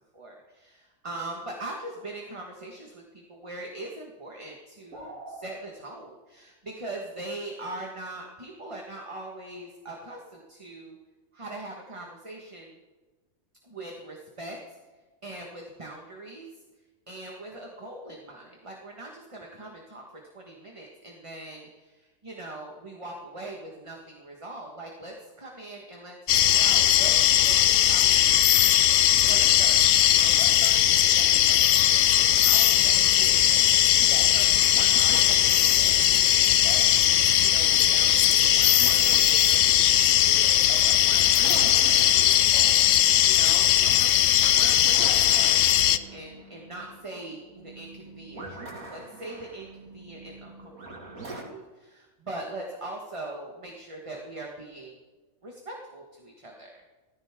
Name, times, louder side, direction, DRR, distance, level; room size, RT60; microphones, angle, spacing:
voice 1, 0.1-11.0 11.3-12.8 13.6-14.8 15.2-16.5 17.1-20.0 20.3-28.6 29.3-36.8 37.4-44.2 44.5-55.0 55.4-56.8, right 2 dB, 25° right, 0 dB, 1.6 m, -42 dB
sound 1, 4.9-5.5, right 1 dB, 60° right, 3.3 m, -41 dB
sound 2, 26.3-46.0, left 11 dB, 70° left, 0.9 m, -20 dB
sound 3, 32.8-51.4, right 2 dB, 85° right, 2.8 m, -43 dB
17.0 x 15.0 x 3.7 m, 1.2 s
omnidirectional pair, 1.4 m